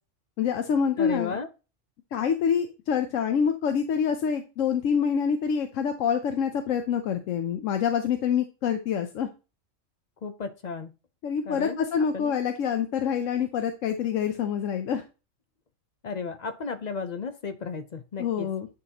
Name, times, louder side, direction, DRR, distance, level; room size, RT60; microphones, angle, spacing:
voice 1, 0.4-1.4 2.1-9.3 11.2-15.0 18.2-18.7, left 7 dB, 75° left, 6 dB, 1.0 m, -26 dB
voice 2, 1.0-1.5 10.2-10.9 11.5-11.8 12.1-12.3 16.0-18.5, left 5 dB, 50° left, 9 dB, 0.5 m, -34 dB
9.4 x 3.9 x 2.8 m, 0.30 s
omnidirectional pair, 1.4 m